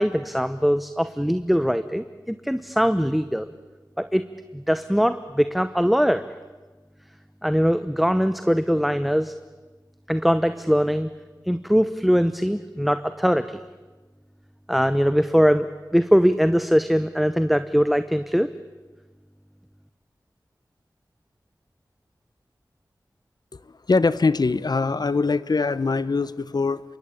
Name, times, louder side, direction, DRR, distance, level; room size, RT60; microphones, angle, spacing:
voice 1, 0.0-3.5 4.0-4.3 4.5-6.3 7.4-9.4 10.1-11.1 11.5-13.6 14.7-15.7 15.9-18.5, equal, ahead, 11 dB, 0.8 m, -21 dB
voice 2, 23.6-26.8, left 4 dB, 65° left, 17 dB, 0.9 m, -22 dB
27.5 x 24.0 x 8.5 m, 1.3 s
wide cardioid pair, 70°, 8 cm